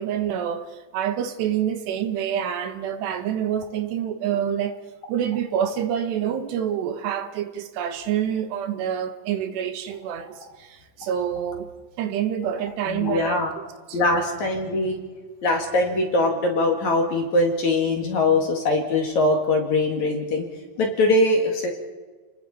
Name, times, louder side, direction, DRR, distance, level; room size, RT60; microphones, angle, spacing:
voice 1, 0.0-4.8 5.1-11.7 12.0-13.6 13.9-14.0, right 9 dB, 75° right, 3.3 m, -27 dB
voice 2, 12.8-13.5 13.9-15.0 15.4-20.5 20.8-21.7, left 2 dB, 50° left, 2.9 m, -22 dB
30.0 x 20.5 x 4.3 m
omnidirectional pair, 5.1 m